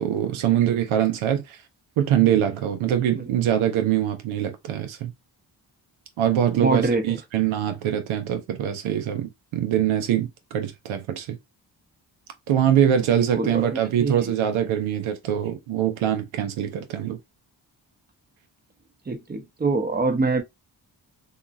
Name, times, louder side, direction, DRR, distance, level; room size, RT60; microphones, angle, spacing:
voice 1, 0.0-1.6 2.0-5.1 6.2-11.4 12.5-17.2, right 10 dB, 90° right, 0.6 m, -23 dB
voice 2, 6.6-7.2 13.3-14.3 19.1-20.4, right 3 dB, 20° right, 0.7 m, -25 dB
2.8 x 2.4 x 2.5 m
supercardioid pair, 45°, 47 cm